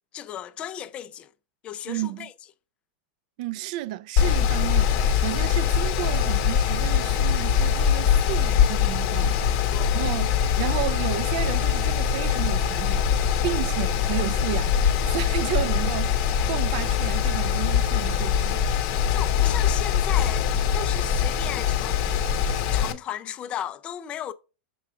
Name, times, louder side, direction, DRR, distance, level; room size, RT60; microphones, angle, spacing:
voice 1, 0.1-1.3 1.6-2.3 9.7-10.0 19.1-22.0 22.7-24.3, left 10 dB, 20° left, 0.4 m, -35 dB
voice 2, 1.9-2.3 3.4-13.2 13.4-16.1 16.5-18.6, right 15 dB, 45° right, 0.4 m, -32 dB
Mechanical fan, 4.2-22.9, left 8 dB, 35° left, 0.8 m, -23 dB
6.9 x 4.8 x 3.6 m
supercardioid pair, 170°, 6 cm